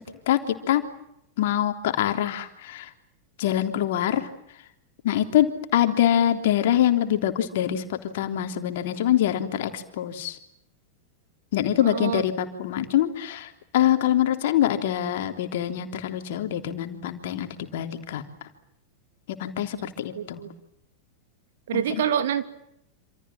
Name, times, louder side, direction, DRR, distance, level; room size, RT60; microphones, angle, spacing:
voice 1, 0.3-0.9 1.4-2.9 3.4-4.3 5.0-10.4 11.5-18.2 19.4-20.5 21.7-21.8, left 11 dB, 55° left, 7 dB, 3.4 m, -24 dB
voice 2, 11.8-12.2 19.8-20.5 21.7-22.4, right 9 dB, 60° right, 9 dB, 2.8 m, -27 dB
28.0 x 27.5 x 7.5 m, 0.76 s
figure-of-eight pair, 90°, 0 cm